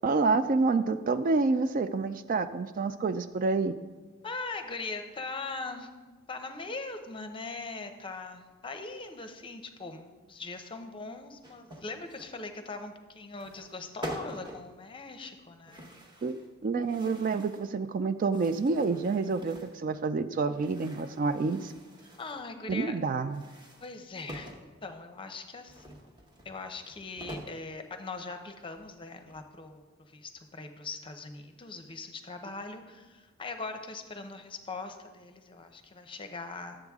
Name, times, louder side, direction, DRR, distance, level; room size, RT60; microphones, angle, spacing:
voice 1, 0.0-3.8 16.2-21.7 22.7-23.4, right 4 dB, 40° right, 11 dB, 0.3 m, -28 dB
voice 2, 4.2-5.9 6.3-16.1 22.2-23.0 23.8-26.1 26.4-36.8, left 3 dB, 25° left, 7 dB, 0.7 m, -41 dB
sound 1, 11.4-12.3 13.3-13.7 14.0-14.7 15.7-16.5 16.8-17.7 18.2-19.8 20.5-22.5 23.2-24.7 25.7-27.6 28.1-28.2 28.7-29.5, equal, 20° right, 1.0 m, -46 dB
11.5 x 7.9 x 3.5 m, 1.3 s
head